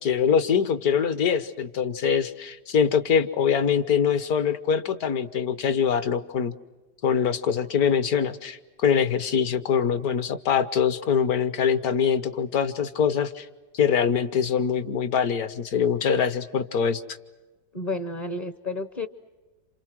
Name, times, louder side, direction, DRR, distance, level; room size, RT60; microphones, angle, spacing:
voice 1, 0.0-6.5 7.0-13.5 13.7-17.0, left 7 dB, 60° left, 13 dB, 1.5 m, -23 dB
voice 2, 17.7-19.1, left 2 dB, 30° left, 11 dB, 0.8 m, -31 dB
28.5 x 27.5 x 6.2 m, 1.2 s
omnidirectional pair, 1.9 m